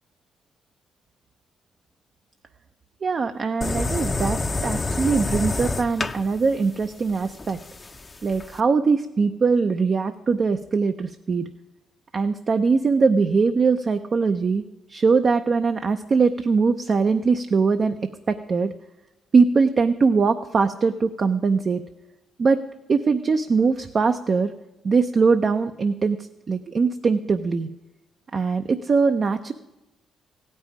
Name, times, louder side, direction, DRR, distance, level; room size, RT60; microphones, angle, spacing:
voice 1, 3.0-7.6 8.2-11.5 12.1-14.6 14.9-18.0 18.3-18.7 19.3-21.8 22.4-22.6 22.9-24.5 24.8-27.7 28.3-29.5, right 4 dB, 40° right, 7 dB, 0.6 m, -21 dB
sound 1, 3.6-8.6, left 3 dB, 25° left, 0.6 m, -28 dB
16.0 x 5.5 x 10.0 m, 1.0 s
cardioid pair, 90°, 0 cm